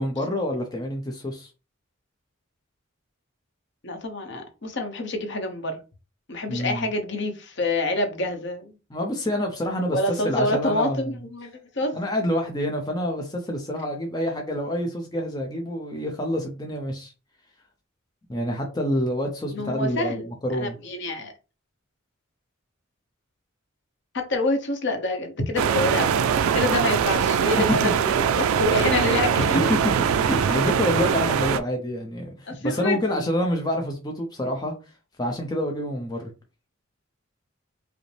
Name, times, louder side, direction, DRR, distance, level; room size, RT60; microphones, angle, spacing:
voice 1, 0.0-1.5 6.5-6.9 8.9-10.0 10.2-11.1 11.9-17.1 18.3-20.8 27.8-27.9 29.5-29.6 30.2-34.7 35.2-36.3, left 1 dB, 20° left, 0.6 m, -27 dB
voice 2, 3.8-5.8 6.3-8.7 9.9-11.9 19.5-21.3 24.1-26.3 26.5-29.8 32.5-33.0, left 2 dB, 55° left, 0.9 m, -27 dB
sound 1, 25.6-31.6, right 7 dB, 80° right, 0.3 m, -22 dB
5.0 x 2.1 x 3.2 m
head